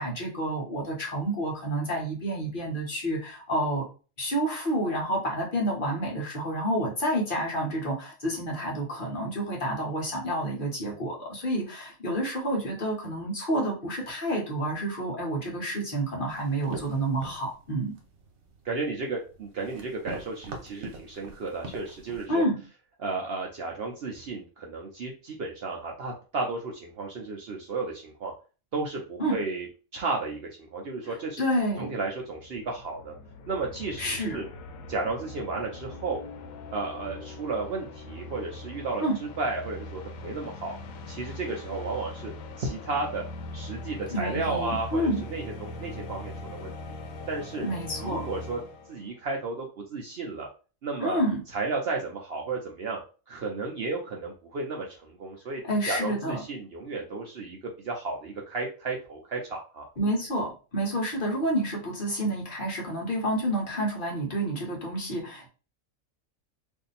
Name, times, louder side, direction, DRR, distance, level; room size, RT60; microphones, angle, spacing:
voice 1, 0.0-3.9 4.2-17.9 22.3-22.6 29.2-29.4 31.0-31.9 34.0-34.4 39.0-39.1 44.1-45.2 47.6-48.2 51.0-51.4 55.6-56.4 60.0-65.5, right 1 dB, 45° left, -2 dB, 1.0 m, -29 dB
sound 1, 16.3-22.3, right 2 dB, 90° right, 1.3 m, -44 dB
voice 2, 18.6-22.4 23.0-28.3 28.7-29.7 29.9-31.4 31.8-33.1 33.5-34.5 34.9-36.2 36.7-40.8 41.1-42.3 42.6-43.2 43.5-46.9 47.3-47.7 48.0-48.6 48.9-50.5 50.8-51.2 51.5-53.0 53.3-55.6 55.9-59.9, right 3 dB, 60° right, 0 dB, 0.7 m, -33 dB
sound 2, 31.7-49.1, left 2 dB, 75° left, 1.0 m, -41 dB
2.7 x 2.6 x 4.0 m, 0.35 s
omnidirectional pair, 1.4 m